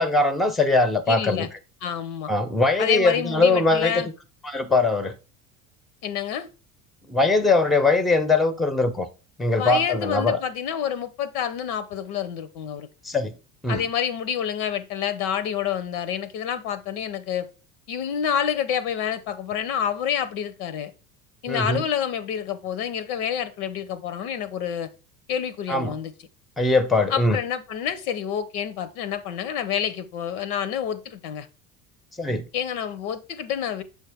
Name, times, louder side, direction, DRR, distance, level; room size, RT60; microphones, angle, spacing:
voice 1, 0.0-1.5 2.3-4.1 4.4-5.1 7.1-9.1 9.4-10.4 13.0-13.4 13.6-13.8 21.5-21.8 25.7-26.0 26.6-27.4 32.2-32.5, left 3 dB, ahead, 0.5 m, -21 dB
voice 2, 1.1-1.5 1.8-2.3 2.8-4.1 6.0-6.5 9.5-12.9 13.7-17.5 17.9-20.9 21.4-24.9 25.3-26.1 27.1-31.5 32.5-33.8, left 8 dB, 85° left, 0.9 m, -28 dB
6.5 x 4.5 x 3.4 m
supercardioid pair, 90°, 42 cm